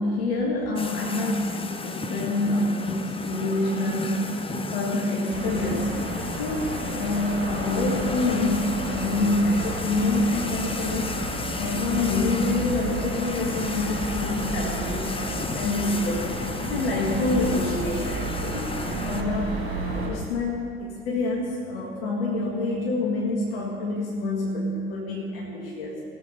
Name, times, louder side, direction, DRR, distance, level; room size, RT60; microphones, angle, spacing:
voice 1, 0.0-11.1 11.6-26.0, left 2 dB, 65° left, -2 dB, 1.8 m, -27 dB
sound 1, 0.8-19.2, left 3 dB, 15° left, 0.8 m, -33 dB
sound 2, 5.3-20.1, right 2 dB, 40° right, 3.6 m, -32 dB
18.0 x 7.5 x 5.4 m, 2.3 s
figure-of-eight pair, 55°, 31 cm